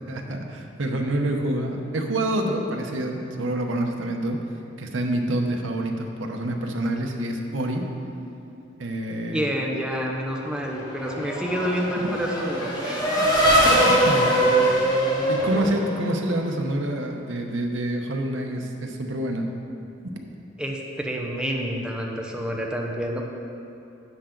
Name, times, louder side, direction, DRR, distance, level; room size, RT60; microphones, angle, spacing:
voice 1, 0.1-4.4 4.8-7.8 8.8-9.4 12.0-12.1 13.8-14.8 15.3-19.5, right 1 dB, 85° right, 2 dB, 0.9 m, -27 dB
voice 2, 9.3-13.3 13.6-13.8 14.8-14.9 20.6-23.2, equal, 5° right, -1 dB, 0.9 m, -28 dB
Race car auto racing / Accelerating revving vroom, 10.4-16.5, right 1 dB, 20° left, 1.5 m, -22 dB
10.5 x 7.6 x 3.9 m, 2.7 s
head